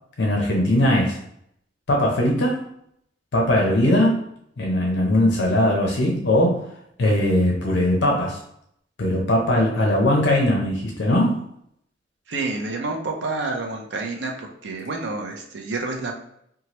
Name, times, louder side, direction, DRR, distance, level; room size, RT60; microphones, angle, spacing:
voice 1, 0.2-1.2 1.9-2.6 3.3-4.2 4.6-6.7 7.0-8.4 9.0-11.4, left 1 dB, 70° left, -1 dB, 0.6 m, -20 dB
voice 2, 12.3-16.2, right 3 dB, 70° right, 2 dB, 0.5 m, -29 dB
2.8 x 2.3 x 3.0 m, 0.72 s
head